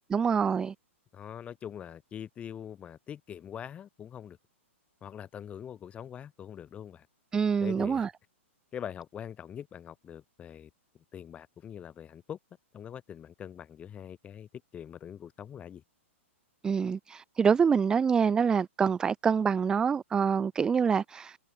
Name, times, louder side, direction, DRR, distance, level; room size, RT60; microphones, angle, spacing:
voice 1, 0.1-0.7 7.3-8.1 16.6-21.4, right 6 dB, 10° right, 0.4 m, -26 dB
voice 2, 1.1-4.4 5.0-7.1 7.6-8.1 8.7-10.7 11.1-12.4 12.7-15.8, left 9 dB, 15° left, 6.0 m, -43 dB
hypercardioid pair, 150°, 7 cm